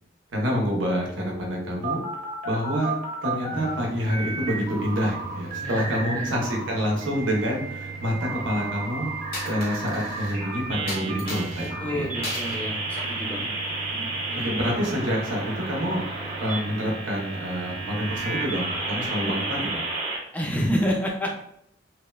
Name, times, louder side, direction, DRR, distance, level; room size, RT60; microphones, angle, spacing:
voice 1, 0.3-2.0 2.4-2.9 3.2-9.1 9.4-11.7 11.9-12.1 14.4-16.0 16.4-19.8, equal, 90° right, 0 dB, 0.7 m, -27 dB
sound 1, 1.1-3.7 4.1-6.6 7.0-20.2, right 3 dB, 35° right, 0.8 m, -33 dB
sound 2, 3.5-19.1, right 2 dB, 55° right, 0.4 m, -39 dB
voice 2, 5.6-6.3 11.8-13.5 13.9-14.5 20.3-21.3, equal, 10° left, -1 dB, 0.4 m, -29 dB
Coin (dropping), 9.3-10.4 10.9-11.7 12.2-12.6 13.0-14.1, left 2 dB, 55° left, 0.7 m, -37 dB
3.0 x 2.1 x 2.2 m, 0.74 s
head